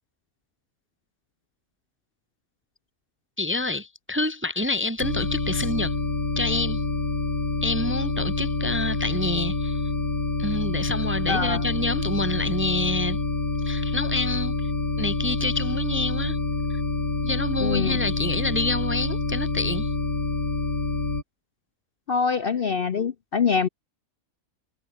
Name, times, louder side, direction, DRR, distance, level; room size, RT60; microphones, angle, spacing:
voice 1, 3.4-5.9 6.4-6.8 7.6-9.8 10.4-13.2 13.6-14.5 15.0-16.4 17.2-19.9, left 2 dB, 10° right, 0.8 m, -27 dB
sound 1, 5.0-21.2, left 3 dB, 75° left, 5.0 m, -27 dB
voice 2, 11.3-11.6 17.6-18.0 22.1-23.7, left 5 dB, 50° left, 0.8 m, -24 dB
omnidirectional pair, 1.5 m